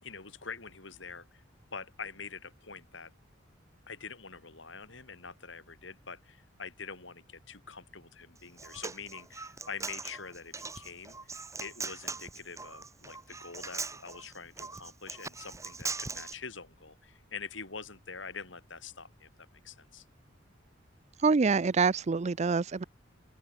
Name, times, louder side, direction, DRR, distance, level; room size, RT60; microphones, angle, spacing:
voice 1, 0.0-1.4 1.7-3.1 3.9-11.3 11.6-20.0, left 5 dB, 65° left, 3.9 m, -45 dB
Human voice, 8.4-16.3, right 4 dB, 15° right, 4.1 m, -40 dB
voice 2, 21.2-22.8, right 4 dB, 35° right, 0.4 m, -26 dB
open air
head